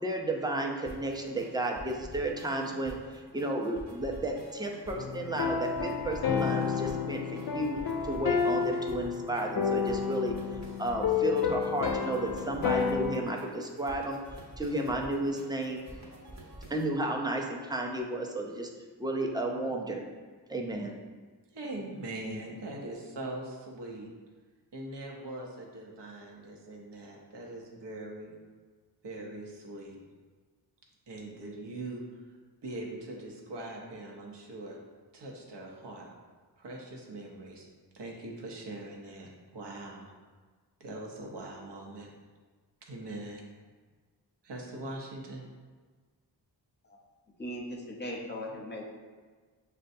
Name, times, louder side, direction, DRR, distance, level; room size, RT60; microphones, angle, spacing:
voice 1, 0.0-7.8 8.0-10.4 10.8-14.2 14.6-15.8 16.7-18.7 19.0-20.0 20.5-20.9, right 1 dB, 10° right, 0 dB, 0.5 m, -33 dB
sound 1, 0.9-16.8, right 1 dB, 40° right, 0.9 m, -48 dB
sound 2, 5.0-13.2, left 6 dB, 60° left, 0.5 m, -30 dB
voice 2, 21.5-24.1 24.7-28.3 29.0-30.0 31.1-32.2 32.6-34.8 35.1-36.1 36.6-37.7 37.9-40.1 40.8-42.1 42.8-43.4 44.4-45.4, right 1 dB, 75° right, -1 dB, 0.8 m, -41 dB
voice 3, 47.4-48.8, equal, 25° left, -1 dB, 0.8 m, -38 dB
6.3 x 2.2 x 2.6 m, 1.5 s
wide cardioid pair, 65°, 43 cm